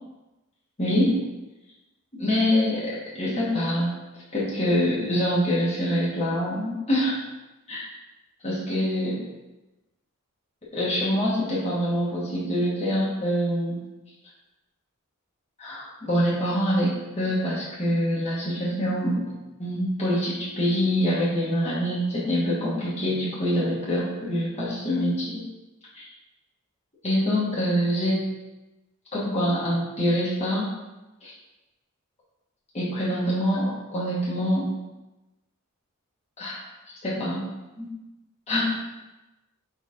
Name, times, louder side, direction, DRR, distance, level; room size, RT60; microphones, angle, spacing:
voice 1, 0.8-1.2 2.1-3.9 4.3-7.2 7.7-7.8 8.4-9.2 10.7-13.8 15.6-19.3 19.6-25.4 26.0-26.1 27.0-28.3 29.1-30.7 31.2-31.3 32.7-34.7 36.4-37.9 38.5-38.6, equal, 30° left, -8 dB, 1.1 m, -25 dB
4.9 x 4.3 x 2.5 m, 1.0 s
head